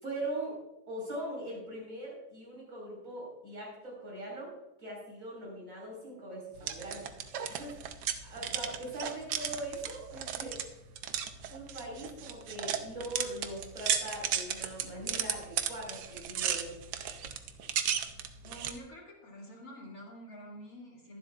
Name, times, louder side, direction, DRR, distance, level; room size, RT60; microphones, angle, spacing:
voice 1, 0.0-0.6 0.9-4.5 4.8-7.1 7.5-7.8 8.2-10.6 11.5-16.7, right 1 dB, 60° right, -4 dB, 5.5 m, -41 dB
sound 1, 6.6-18.8, right 9 dB, 90° right, 1.4 m, -35 dB
voice 2, 18.4-21.2, equal, 60° left, -3 dB, 3.0 m, -48 dB
22.5 x 7.6 x 2.5 m, 0.92 s
omnidirectional pair, 1.7 m